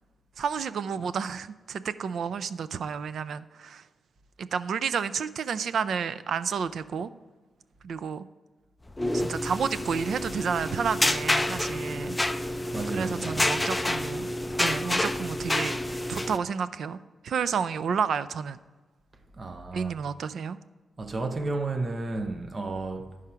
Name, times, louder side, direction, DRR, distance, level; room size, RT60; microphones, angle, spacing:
voice 1, 0.4-3.8 4.4-7.1 7.8-8.3 9.1-12.2 12.9-14.3 14.6-17.0 17.2-18.6 19.7-20.6, right 6 dB, 70° right, 0.4 m, -30 dB
sound 1, 8.9-16.4, left 1 dB, 10° left, 0.4 m, -28 dB
voice 2, 12.7-13.9 19.3-20.0 21.0-23.2, right 3 dB, 30° right, 0.6 m, -33 dB
12.0 x 4.9 x 5.6 m
wide cardioid pair, 155°, 0 cm